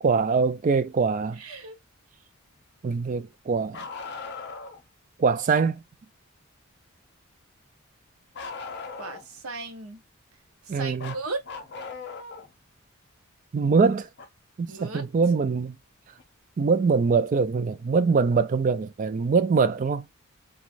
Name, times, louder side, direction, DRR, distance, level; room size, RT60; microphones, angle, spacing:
voice 1, 0.0-1.4 2.8-3.8 5.2-5.8 10.7-11.1 13.5-14.1 14.6-15.8 16.6-20.1, right 5 dB, 35° right, 0.3 m, -23 dB
voice 2, 1.3-1.8 9.0-10.0 10.6-11.5 14.7-15.0, right 3 dB, 80° right, 0.8 m, -36 dB
Bark, 3.7-4.8 8.4-9.4 11.0-12.5 14.2-14.3 16.2-16.3 17.4-17.5, left 4 dB, 50° left, 0.6 m, -38 dB
3.0 x 2.3 x 2.5 m
head